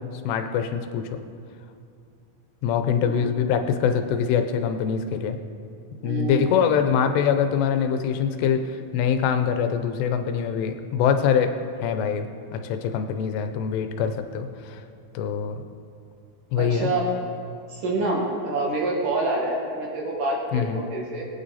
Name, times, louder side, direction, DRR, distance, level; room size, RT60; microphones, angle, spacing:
voice 1, 0.2-1.0 2.6-5.4 6.0-11.5 11.8-12.3 12.5-14.8 15.1-15.6 16.5-16.9 20.5-20.8, left 7 dB, 90° left, 7 dB, 3.0 m, -24 dB
voice 2, 6.0-6.8 16.6-17.1 17.7-21.2, right 2 dB, 60° right, -2 dB, 3.0 m, -27 dB
21.5 x 9.2 x 4.2 m, 2.4 s
omnidirectional pair, 4.7 m